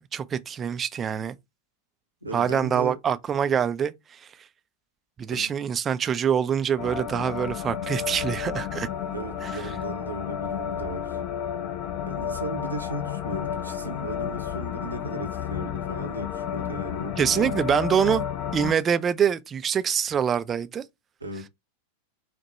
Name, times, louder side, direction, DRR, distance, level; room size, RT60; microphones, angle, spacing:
voice 1, 0.0-1.4 2.3-4.3 5.2-8.9 9.4-9.7 17.2-18.3 18.5-20.8, right 8 dB, 25° right, 0.4 m, -25 dB
voice 2, 2.2-3.0 5.3-5.5 9.1-11.2 12.1-17.5 21.2-21.5, right 2 dB, 80° right, 0.8 m, -36 dB
sound 1, 6.8-18.7, left 9 dB, 40° left, 0.6 m, -32 dB
4.5 x 2.2 x 4.1 m
figure-of-eight pair, 90°, 0 cm